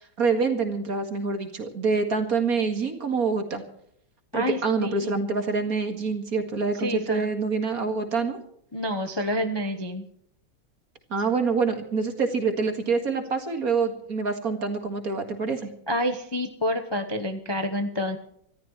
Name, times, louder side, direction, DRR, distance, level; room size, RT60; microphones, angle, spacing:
voice 1, 0.2-3.6 4.3-8.4 11.1-15.7, right 4 dB, 50° right, 5 dB, 2.4 m, -26 dB
voice 2, 4.3-5.2 6.8-7.3 8.7-10.0 15.9-18.2, left 1 dB, 20° left, 4 dB, 0.8 m, -28 dB
26.0 x 14.0 x 3.2 m, 0.70 s
omnidirectional pair, 2.0 m